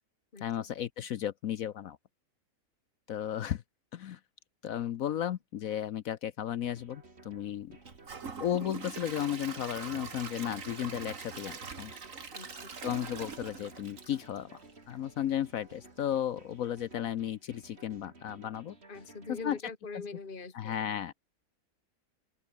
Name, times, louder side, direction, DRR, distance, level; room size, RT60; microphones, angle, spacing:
voice 1, 0.4-2.0 3.1-3.6 3.9-4.2 4.6-7.7 8.4-12.0 12.8-14.6 14.9-18.7 19.4-19.6 20.5-21.1, left 10 dB, 70° left, 1.1 m, -34 dB
sound 1, 6.6-19.6, right 2 dB, 40° right, 3.8 m, -56 dB
Gurgling / Toilet flush / Trickle dribble, 7.8-14.9 15.3-15.4 15.9-16.0, right 5 dB, 55° right, 2.3 m, -43 dB
voice 2, 12.3-12.9 18.9-20.8, left 4 dB, 35° left, 2.2 m, -43 dB
open air
omnidirectional pair, 1.6 m